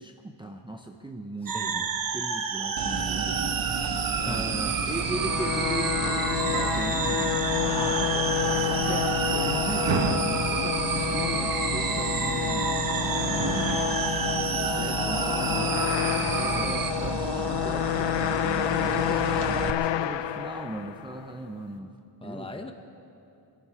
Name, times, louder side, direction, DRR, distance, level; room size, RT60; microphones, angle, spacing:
voice 1, 0.0-7.4 8.5-12.7 13.3-15.9 16.3-18.2 18.8-21.9 22.2-22.7, right 2 dB, 10° right, 3 dB, 0.6 m, -38 dB
voice 2, 1.5-1.8 4.2-4.6 7.6-9.4 16.5-16.8 22.2-22.7, left 2 dB, 15° left, 5 dB, 1.0 m, -39 dB
sound 1, 1.5-16.9, right 5 dB, 50° right, 1.1 m, -30 dB
sound 2, 2.8-19.7, right 5 dB, 90° right, 1.0 m, -33 dB
sound 3, 4.9-21.2, left 12 dB, 80° left, 0.6 m, -29 dB
23.0 x 12.5 x 4.9 m, 2.8 s
wide cardioid pair, 140°, 42 cm